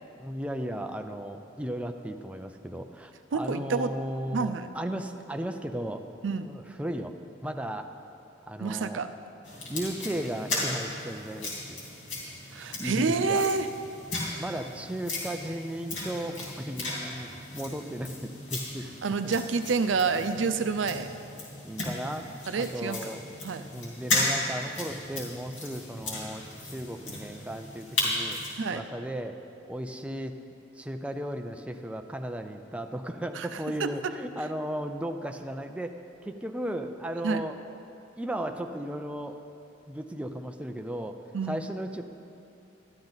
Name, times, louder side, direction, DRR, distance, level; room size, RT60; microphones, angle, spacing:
voice 1, 0.2-6.1 6.5-7.1 7.4-7.9 8.5-9.0 9.7-11.8 12.8-13.5 14.4-18.9 19.2-19.4 21.6-22.3 22.5-23.2 23.7-28.4 28.7-29.4 29.7-30.4 30.8-37.6 38.2-39.4 39.9-41.2 41.4-42.0, right 1 dB, 5° right, 5 dB, 0.4 m, -35 dB
voice 2, 3.3-3.9 4.3-4.7 6.2-6.5 8.6-9.1 12.5-13.7 19.0-21.1 22.5-23.1 23.4-23.6 28.6-28.8 33.4-33.5 33.8-33.9 37.2-37.4 41.3-41.6, right 4 dB, 90° right, 9 dB, 0.5 m, -28 dB
sound 1, 9.4-28.6, left 2 dB, 85° left, 3.0 m, -35 dB
13.0 x 10.5 x 4.0 m, 2.7 s
head